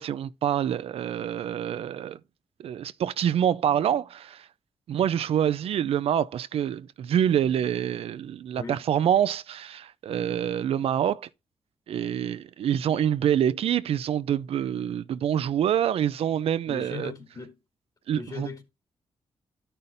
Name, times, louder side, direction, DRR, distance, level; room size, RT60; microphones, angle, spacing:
voice 1, 0.0-2.2 2.6-4.5 4.9-11.3 11.9-17.1 18.1-18.5, right 9 dB, 75° right, 0.4 m, -26 dB
voice 2, 16.7-17.6 18.1-18.6, left 3 dB, 40° left, 2.2 m, -38 dB
13.5 x 5.5 x 2.6 m
cardioid pair, 95°, 10 cm